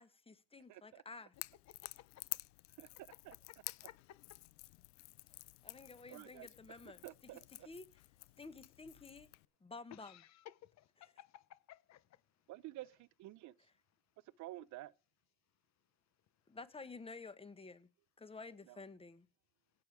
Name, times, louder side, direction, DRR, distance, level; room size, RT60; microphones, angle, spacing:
voice 1, 0.0-1.3 5.6-7.0 7.6-7.9 8.4-9.3 9.6-10.2 16.5-17.9 18.2-19.3, left 3 dB, 15° left, 1.2 m, -52 dB
voice 2, 0.7-1.0 2.8-2.9 3.2-3.4 6.1-7.7 12.5-13.6 14.4-14.9 18.7-18.8, right 16 dB, 50° right, 0.7 m, -51 dB
Crackle / Crack, 1.3-9.5, left 23 dB, 80° left, 0.6 m, -51 dB
voice 3, 1.8-2.2 3.9-4.0 4.3-4.4 9.9-12.0, left 13 dB, 45° left, 0.9 m, -57 dB
17.0 x 7.0 x 4.8 m
supercardioid pair, 95°, 37 cm